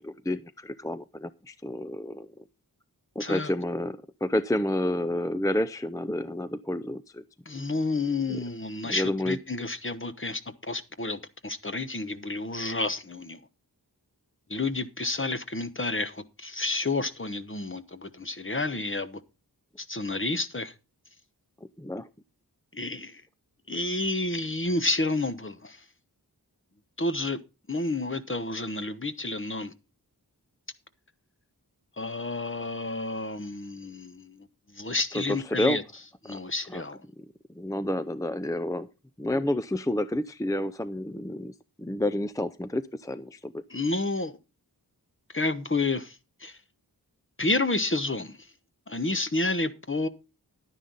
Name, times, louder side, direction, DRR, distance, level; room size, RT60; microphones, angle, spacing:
voice 1, 0.0-2.3 3.2-7.2 8.3-8.4 8.8-9.4 21.8-22.1 35.1-35.8 36.3-36.4 36.7-36.8 37.2-37.3 37.5-38.9 39.2-43.6, left 1 dB, 10° left, 0.5 m, -30 dB
voice 2, 3.2-3.5 7.5-13.4 14.5-19.2 19.8-20.7 22.7-23.2 23.7-25.8 27.0-27.4 27.7-29.7 32.0-34.5 34.7-35.8 36.2-37.0 43.7-44.3 45.3-46.6 47.4-48.5 48.9-50.1, left 2 dB, 30° left, 1.1 m, -30 dB
11.5 x 9.9 x 4.0 m
wide cardioid pair, 45°, 39 cm